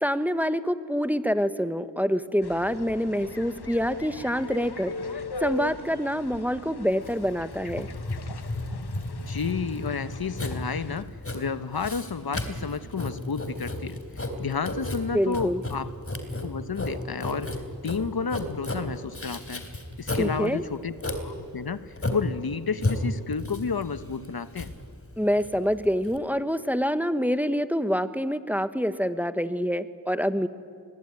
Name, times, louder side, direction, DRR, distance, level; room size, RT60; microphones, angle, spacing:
voice 1, 0.0-4.9 5.4-7.9 15.1-15.6 20.1-20.6 25.2-30.5, equal, 5° right, 11 dB, 1.2 m, -26 dB
sound 1, 2.4-11.0, left 3 dB, 85° left, 1.3 m, -39 dB
Writing, 7.0-26.2, left 1 dB, 35° left, 3.6 m, -33 dB
voice 2, 9.2-15.9 16.4-17.5 17.8-19.6 20.0-21.0 21.2-24.7, left 5 dB, 70° left, 13 dB, 1.1 m, -31 dB
28.0 x 21.5 x 9.7 m, 2.3 s
wide cardioid pair, 50°, 38 cm